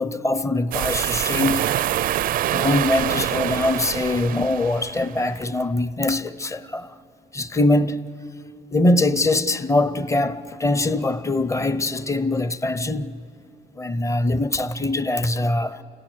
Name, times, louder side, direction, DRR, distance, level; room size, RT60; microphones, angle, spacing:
voice 1, 0.0-1.8 2.5-6.9 7.3-8.1 8.7-13.2 13.7-15.8, left 2 dB, 20° left, 0.7 m, -22 dB
sound 1, 0.7-5.2, right 13 dB, 55° right, 0.4 m, -25 dB
30.0 x 17.0 x 6.3 m
cardioid pair, 110°, 17 cm